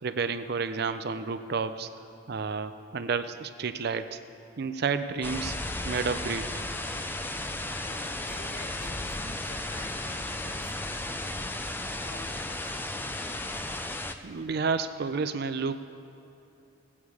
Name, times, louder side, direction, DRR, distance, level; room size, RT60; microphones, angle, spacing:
voice 1, 0.0-1.9 2.3-4.2 4.6-5.5 5.8-6.5 14.2-15.9, right 5 dB, 50° right, 11 dB, 0.4 m, -30 dB
sound 1, 5.2-14.1, left 2 dB, 10° left, 0.4 m, -34 dB
voice 2, 7.8-13.1 13.4-14.0, left 2 dB, 40° left, 3 dB, 1.1 m, -48 dB
17.5 x 8.6 x 4.7 m, 2.9 s
head